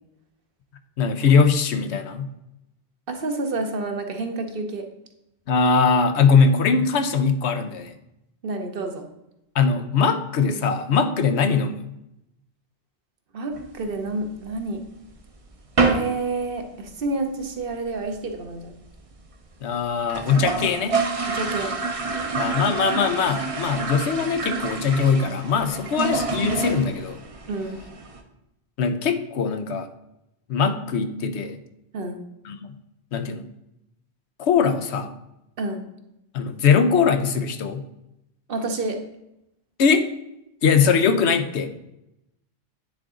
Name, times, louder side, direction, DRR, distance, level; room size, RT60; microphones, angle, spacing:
voice 1, 1.0-2.3 5.5-7.9 9.5-11.8 19.6-21.0 22.3-27.2 28.8-29.9 30.5-31.6 32.4-32.7 33.1-33.4 34.4-35.1 36.3-37.9 39.8-40.1 40.6-41.7, left 5 dB, 85° left, 9 dB, 1.0 m, -21 dB
voice 2, 3.1-4.9 8.4-9.1 13.3-14.8 15.8-18.7 21.3-21.7 27.5-27.8 31.9-32.2 35.6-35.9 38.5-39.0, right 2 dB, 60° right, 5 dB, 1.0 m, -29 dB
sound 1, 13.5-14.6 15.0-15.1 15.3-15.5 15.8-16.2 16.5-16.6 16.9-17.0 17.2-17.7 18.0-18.1 18.3-18.4 18.6-18.7 19.2-19.3 19.6-19.7 20.0-28.2, right 3 dB, 35° right, 0.7 m, -27 dB
9.5 x 3.9 x 3.7 m, 0.86 s
omnidirectional pair, 1.1 m